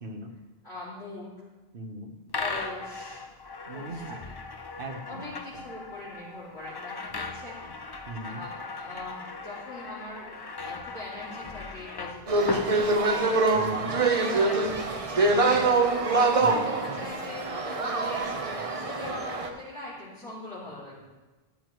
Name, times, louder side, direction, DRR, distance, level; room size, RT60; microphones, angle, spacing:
voice 1, 0.0-0.4 1.7-2.2 3.7-4.2 4.8-5.6 8.1-8.5 13.5-14.0 16.4-16.7, right 1 dB, 60° right, 5 dB, 1.1 m, -39 dB
voice 2, 0.6-1.3 2.4-3.2 3.7-4.4 5.0-7.7 8.3-13.4 14.1-15.7 16.2-18.3 18.5-21.1, left 2 dB, 90° left, -10 dB, 3.1 m, -42 dB
sound 1, 2.3-13.5, left 3 dB, 30° left, 0.5 m, -38 dB
sound 2, 12.3-19.5, right 3 dB, 35° right, 0.9 m, -25 dB
12.5 x 10.5 x 3.1 m, 1.2 s
omnidirectional pair, 1.1 m